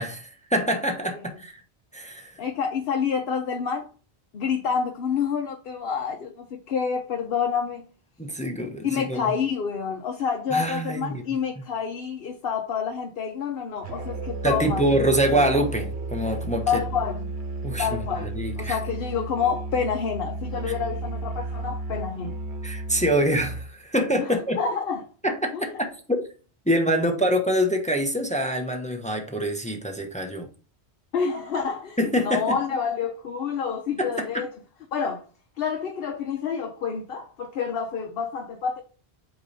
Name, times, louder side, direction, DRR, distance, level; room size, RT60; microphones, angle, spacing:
voice 1, 0.0-1.6 1.9-2.4 8.2-9.3 10.5-11.2 14.4-16.8 17.6-18.8 20.7-20.8 22.6-24.6 25.2-25.5 26.1-26.2 26.7-30.5 32.0-32.6 34.0-34.1, right 1 dB, 5° left, 0.8 m, -25 dB
voice 2, 2.4-3.9 4.3-7.8 8.8-15.5 16.7-17.3 17.8-18.3 18.6-22.4 24.6-25.0 25.5-25.7 26.9-27.2 31.1-34.5 34.9-35.2 35.6-38.8, left 6 dB, 60° left, 0.9 m, -28 dB
Musical instrument, 13.8-23.7, right 2 dB, 80° right, 1.2 m, -33 dB
8.3 x 3.0 x 4.0 m
omnidirectional pair, 1.1 m